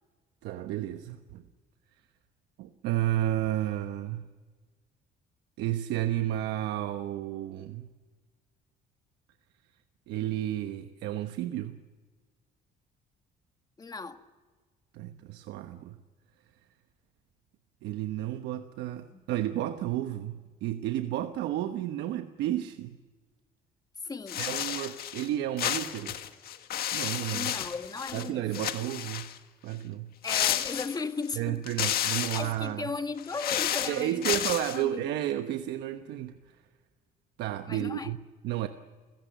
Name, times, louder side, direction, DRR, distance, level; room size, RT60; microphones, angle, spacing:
voice 1, 0.4-1.4 2.6-4.3 5.6-7.9 10.1-11.8 14.9-16.0 17.8-23.0 24.4-26.2 26.9-27.5 28.1-29.3 29.6-30.1 31.4-32.9 33.9-36.6 37.4-38.2 38.4-38.7, right 13 dB, 85° right, 1.1 m, -32 dB
voice 2, 13.8-14.2 19.1-19.2 24.0-24.4 27.3-28.5 30.2-31.6 32.3-34.4 34.7-35.1 37.7-38.1, left 4 dB, 20° left, 1.7 m, -36 dB
sound 1, 24.3-25.3 25.6-28.3 28.5-29.4 30.2-31.3 31.6-32.5 33.2-34.8, left 11 dB, 65° left, 1.7 m, -31 dB
29.0 x 16.5 x 8.1 m
cardioid pair, 110°, 17 cm